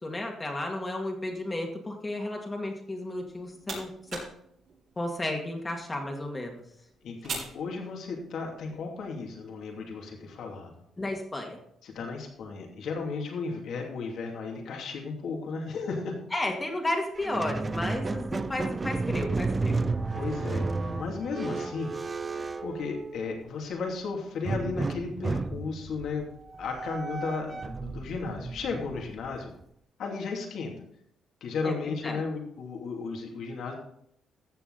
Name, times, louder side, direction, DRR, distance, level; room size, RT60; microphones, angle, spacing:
voice 1, 0.0-4.2 5.0-6.6 11.0-11.6 16.3-19.8 31.6-32.2, left 1 dB, 20° left, 1 dB, 2.1 m, -33 dB
sound 1, 3.1-8.5, right 3 dB, 70° right, 5.4 m, -43 dB
voice 2, 7.0-10.7 11.8-16.2 20.1-21.9 22.3-26.2 26.6-29.5 30.0-30.7 31.4-33.7, left 4 dB, 70° left, 1 dB, 2.7 m, -34 dB
Squeak, 17.2-23.5 24.4-29.6, right 3 dB, 25° right, 0.5 m, -33 dB
14.5 x 7.0 x 4.0 m, 0.71 s
cardioid pair, 90°, 0 cm